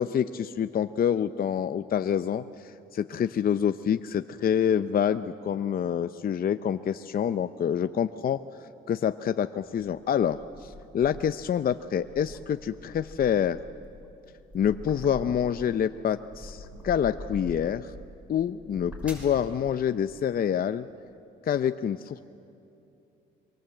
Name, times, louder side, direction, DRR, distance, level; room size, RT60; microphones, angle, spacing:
voice 1, 0.0-8.4 8.9-13.6 14.5-17.9 18.3-20.9 21.5-22.2, left 8 dB, 50° left, 10 dB, 0.6 m, -27 dB
sound 1, 9.6-11.5 11.9-15.7 16.1-17.9 18.5-19.4, left 1 dB, 5° right, 6.3 m, -44 dB
24.5 x 23.5 x 7.8 m, 2.8 s
cardioid pair, 90°, 20 cm